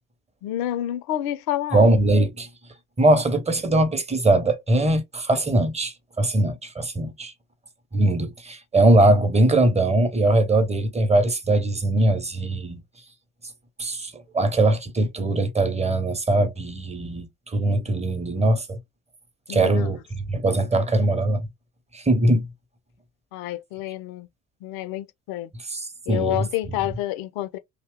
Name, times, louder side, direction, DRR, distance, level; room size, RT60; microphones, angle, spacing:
voice 1, 0.4-1.9 19.5-19.9 23.3-24.3 24.6-25.5 26.1-27.6, left 13 dB, 65° left, 0.5 m, -29 dB
voice 2, 1.7-2.5 3.0-7.3 7.9-12.8 13.8-18.8 19.5-21.5 21.9-22.5 25.7-26.5, right 1 dB, 15° right, 0.7 m, -21 dB
2.7 x 2.1 x 3.4 m
figure-of-eight pair, 50°, 40 cm